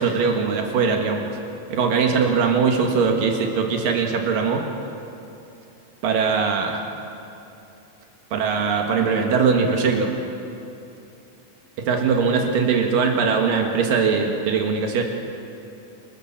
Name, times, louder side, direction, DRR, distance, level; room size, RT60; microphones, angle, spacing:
voice 1, 0.0-1.4 1.7-4.7 6.0-6.8 8.3-10.1 11.9-15.0, right 5 dB, 90° right, 2 dB, 3.4 m, -21 dB
28.5 x 15.0 x 7.3 m, 2.8 s
omnidirectional pair, 3.8 m